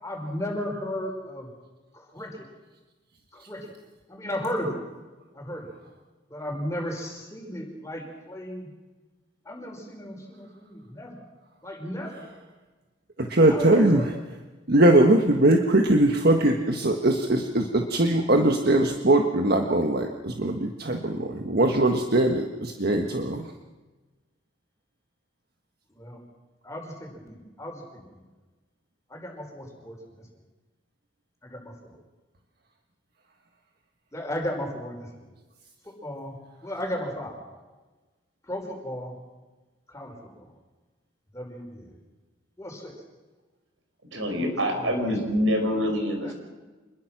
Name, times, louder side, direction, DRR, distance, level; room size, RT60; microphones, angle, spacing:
voice 1, 0.0-1.5 1.9-2.5 3.3-3.7 4.1-4.8 5.3-5.7 6.3-8.7 9.5-11.1 11.6-12.3 13.5-14.0 26.0-26.2 26.6-28.0 29.1-30.0 31.4-31.9 34.1-35.2 36.0-36.3 36.6-37.4 38.5-39.1 39.9-40.5 41.3-42.0 42.6-42.9 44.4-45.1 46.2-46.3, equal, 15° left, 1 dB, 5.4 m, -35 dB
voice 2, 13.2-14.1 14.7-23.5, right 1 dB, 55° right, 4 dB, 1.6 m, -21 dB
voice 3, 44.1-46.3, equal, 85° right, 4 dB, 5.4 m, -25 dB
26.5 x 21.5 x 6.1 m, 1.2 s
head